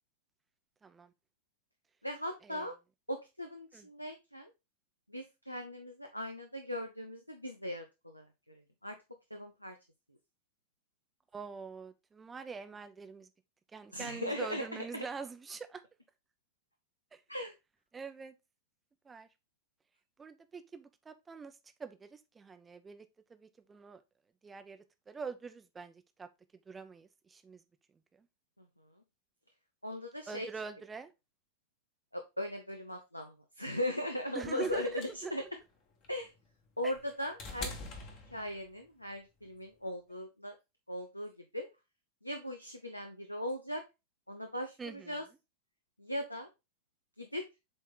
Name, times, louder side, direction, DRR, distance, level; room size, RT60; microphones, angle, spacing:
voice 1, 0.8-1.1 2.4-2.7 3.7-3.9 11.3-13.3 13.7-15.8 17.1-17.2 17.9-18.3 19.0-19.3 20.2-24.0 24.4-24.8 25.1-26.3 26.7-27.6 28.2-28.3 30.3-31.1 34.3-35.5 36.8-36.9 44.8-45.2, right 5 dB, 15° right, 0.7 m, -44 dB
voice 2, 2.0-2.7 3.1-4.5 5.1-9.0 9.3-9.8 13.9-15.1 17.3-17.5 29.8-30.5 32.1-35.4 36.1-36.3 36.8-37.7 38.3-40.5 40.9-41.7 42.2-43.8 44.3-45.2 46.0-46.5 47.2-47.5, left 1 dB, 90° left, 0.7 m, -39 dB
sound 1, 34.6-38.9 40.1-40.2, left 3 dB, 40° left, 1.6 m, -45 dB
7.7 x 3.3 x 3.8 m
figure-of-eight pair, 90°, 0 cm